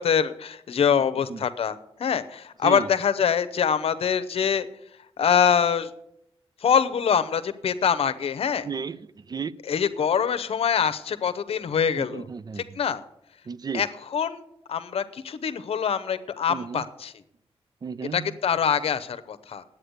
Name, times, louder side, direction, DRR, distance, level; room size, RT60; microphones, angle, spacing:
voice 1, 0.0-4.7 5.2-5.9 6.6-8.7 9.7-12.3 12.6-13.0 13.7-17.1 18.1-19.6, left 7 dB, 70° left, 13 dB, 0.8 m, -24 dB
voice 2, 0.9-1.4 2.6-2.9 8.6-9.5 12.0-12.8 13.5-13.8 16.5-16.8 17.8-18.3, right 6 dB, 40° right, 17 dB, 0.4 m, -34 dB
9.7 x 8.7 x 8.0 m, 0.78 s
wide cardioid pair, 110°, 10 cm